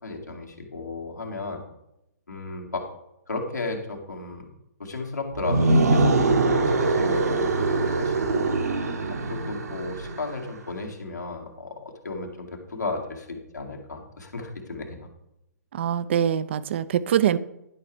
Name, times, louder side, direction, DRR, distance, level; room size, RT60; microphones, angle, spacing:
voice 1, 0.0-1.6 2.3-2.9 3.3-4.5 4.8-6.4 6.6-8.5 9.3-15.1, left 3 dB, 75° left, 0 dB, 2.1 m, -34 dB
sound 1, 5.3-10.4, right 3 dB, 65° right, 1.2 m, -23 dB
voice 2, 15.7-17.4, right 9 dB, 40° right, 16 dB, 0.5 m, -23 dB
11.0 x 5.8 x 4.7 m, 0.84 s
figure-of-eight pair, 125°, 9 cm